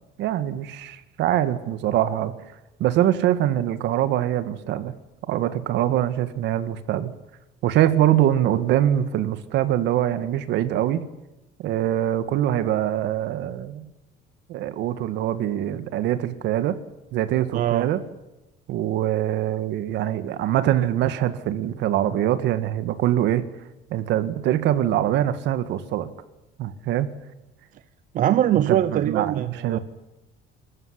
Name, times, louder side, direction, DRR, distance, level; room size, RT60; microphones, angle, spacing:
voice 1, 0.2-2.3 2.8-4.9 5.3-7.1 7.6-11.1 11.6-13.8 14.5-16.8 17.1-18.0 18.7-23.4 23.9-26.1 26.6-27.1 28.7-29.8, right 12 dB, 60° right, 12 dB, 1.8 m, -23 dB
voice 2, 17.5-17.9 28.1-29.8, right 11 dB, 40° right, 13 dB, 0.7 m, -22 dB
25.0 x 14.5 x 10.0 m, 0.98 s
cardioid pair, 175°, 20 cm